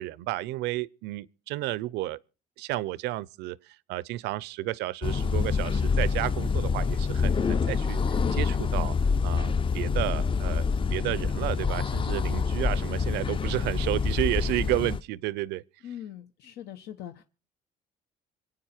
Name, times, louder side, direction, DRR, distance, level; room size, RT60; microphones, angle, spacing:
voice 1, 0.0-2.2 2.6-9.0 9.2-15.6, right 16 dB, 90° right, 0.6 m, -32 dB
sound 1, 5.0-15.0, left 5 dB, 30° left, 0.6 m, -26 dB
voice 2, 15.8-17.2, left 10 dB, 75° left, 1.2 m, -41 dB
26.5 x 9.0 x 4.4 m
cardioid pair, 110°, 17 cm